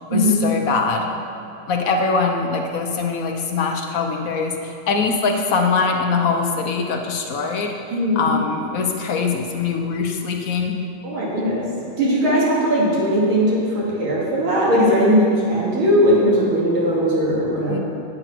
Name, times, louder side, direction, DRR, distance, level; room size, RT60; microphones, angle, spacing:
voice 1, 0.1-1.1 1.7-7.7 8.1-10.8 17.7-17.8, left 4 dB, 65° left, 3 dB, 0.9 m, -22 dB
voice 2, 11.0-11.6 12.0-13.6 14.0-17.8, equal, 80° right, -6 dB, 3.1 m, -18 dB
8.9 x 7.9 x 6.0 m, 2.5 s
omnidirectional pair, 2.2 m